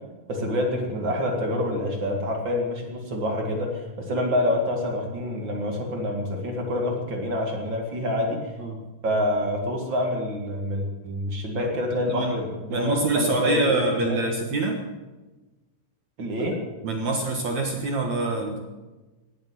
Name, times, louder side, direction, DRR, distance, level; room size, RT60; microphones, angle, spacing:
voice 1, 0.3-8.4 9.0-14.2 16.2-16.6, left 1 dB, 50° right, 1 dB, 1.4 m, -27 dB
voice 2, 8.2-8.8 12.1-12.3 12.7-14.7 16.4-16.5 16.8-18.6, right 3 dB, 70° right, 2 dB, 1.7 m, -26 dB
18.5 x 8.8 x 8.5 m, 1.2 s
omnidirectional pair, 5.6 m